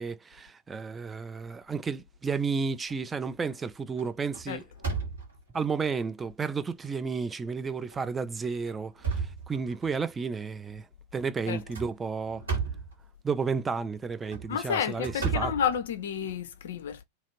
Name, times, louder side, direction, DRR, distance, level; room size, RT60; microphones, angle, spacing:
voice 1, 0.0-4.6 5.5-10.9 11.1-12.4 13.2-15.5, right 5 dB, 15° right, 0.3 m, -32 dB
sound 1, 2.4-2.9 3.4-3.6 4.0-5.6 6.3-6.4 6.8-6.9 7.8-8.1 8.5-10.0 11.5-13.0 14.1-16.3, right 5 dB, 70° right, 1.5 m, -34 dB
voice 2, 14.5-17.0, left 8 dB, 60° left, 0.4 m, -30 dB
2.7 x 2.4 x 3.0 m
figure-of-eight pair, 90°, 0 cm